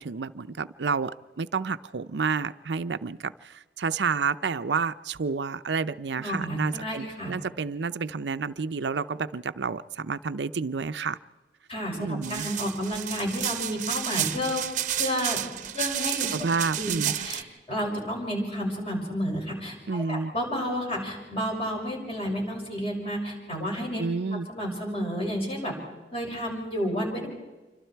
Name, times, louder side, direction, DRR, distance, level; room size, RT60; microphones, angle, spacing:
voice 1, 0.0-11.2 12.0-12.5 16.3-17.1 19.9-20.3 24.0-24.5, right 5 dB, 75° right, 12 dB, 0.6 m, -30 dB
voice 2, 6.2-7.3 11.7-14.6 15.0-16.4 16.8-16.9 17.2-24.0 24.3-25.7 26.1-27.3, equal, 35° left, -1 dB, 6.3 m, -31 dB
sound 1, 12.2-17.4, right 11 dB, 45° right, 0.8 m, -31 dB
27.5 x 25.0 x 4.6 m, 1.2 s
head